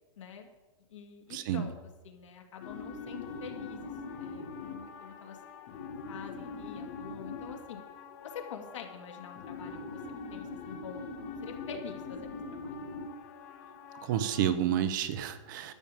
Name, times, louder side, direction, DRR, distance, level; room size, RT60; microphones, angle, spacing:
voice 1, 0.2-0.5 0.9-1.7 2.0-3.9 4.2-5.4 6.1-7.8 8.2-10.0 10.3-11.1 11.4-12.8, left 7 dB, 65° left, 3 dB, 2.3 m, -46 dB
voice 2, 1.3-1.6 14.0-15.7, right 10 dB, 35° right, 11 dB, 0.8 m, -30 dB
sound 1, 2.6-14.5, left 4 dB, 35° left, 1.3 m, -43 dB
12.0 x 6.9 x 7.5 m, 1.1 s
hypercardioid pair, 160°, 17 cm